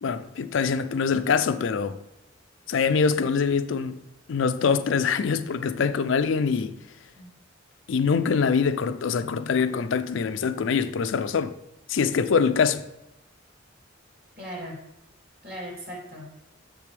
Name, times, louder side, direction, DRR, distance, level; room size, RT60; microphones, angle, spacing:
voice 1, 0.0-2.0 2.7-4.0 4.3-6.7 7.9-11.5 11.9-12.8, left 5 dB, 70° left, 0.4 m, -24 dB
voice 2, 14.4-14.8 15.4-16.3, equal, 50° right, 2.9 m, -38 dB
7.3 x 6.8 x 3.3 m
head